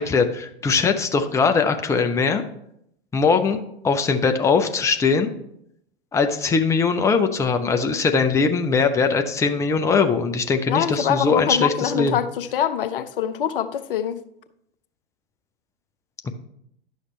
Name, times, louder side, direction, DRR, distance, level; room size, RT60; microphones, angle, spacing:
voice 1, 0.0-2.4 3.1-3.6 3.8-5.3 6.1-12.2, left 5 dB, 10° left, 7 dB, 0.6 m, -21 dB
voice 2, 10.7-14.2, left 9 dB, 65° left, 12 dB, 0.7 m, -24 dB
11.0 x 6.5 x 3.2 m, 0.75 s
figure-of-eight pair, 100°, 30 cm